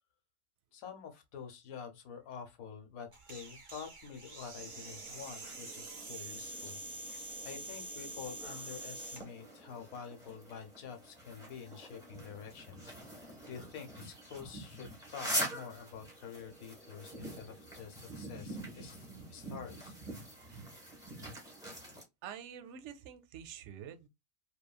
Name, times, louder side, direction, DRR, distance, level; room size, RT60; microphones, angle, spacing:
voice 1, 0.7-19.9, left 7 dB, 85° left, 1.2 m, -48 dB
sound 1, 3.1-9.2, right 2 dB, 45° right, 0.4 m, -46 dB
sound 2, 4.6-22.0, equal, 5° right, 1.1 m, -45 dB
voice 2, 20.1-21.6 22.2-24.1, right 8 dB, 65° right, 0.8 m, -49 dB
3.0 x 2.2 x 2.2 m
omnidirectional pair, 1.4 m